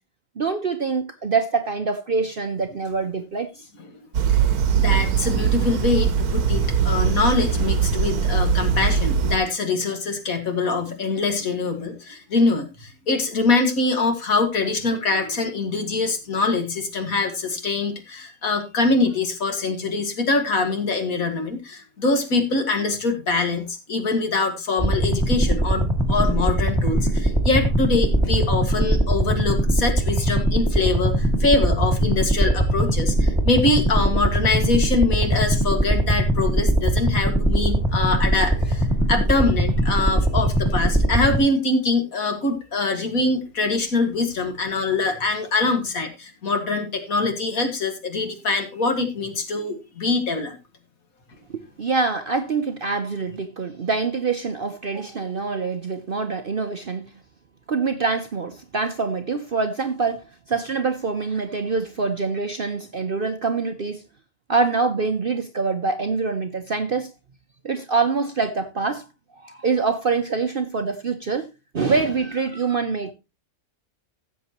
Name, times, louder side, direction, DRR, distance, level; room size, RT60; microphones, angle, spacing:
voice 1, 0.4-3.7 51.5-57.1 57.7-64.0 64.5-67.1 67.6-69.0 69.4-71.5 71.7-73.1, right 4 dB, 45° right, 0.8 m, -25 dB
sound 1, 4.1-9.4, right 7 dB, 75° right, 1.4 m, -21 dB
voice 2, 4.7-50.5, left 3 dB, 65° left, 2.2 m, -24 dB
sound 2, 24.8-41.4, right 1 dB, ahead, 1.9 m, -21 dB
16.0 x 7.6 x 2.9 m
omnidirectional pair, 1.6 m